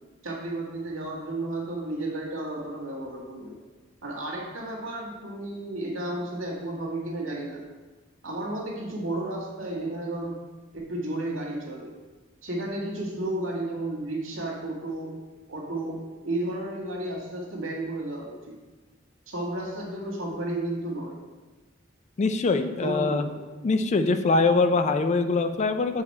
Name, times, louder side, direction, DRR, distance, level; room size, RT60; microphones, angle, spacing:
voice 1, 0.2-3.6 4.0-7.6 8.2-10.3 10.7-11.9 12.4-15.1 15.5-18.5 19.3-21.2 22.8-23.4, right 1 dB, 85° right, -2 dB, 1.8 m, -32 dB
voice 2, 22.2-23.3 23.6-26.0, left 3 dB, 35° left, 9 dB, 0.3 m, -23 dB
7.3 x 4.1 x 4.2 m, 1.2 s
head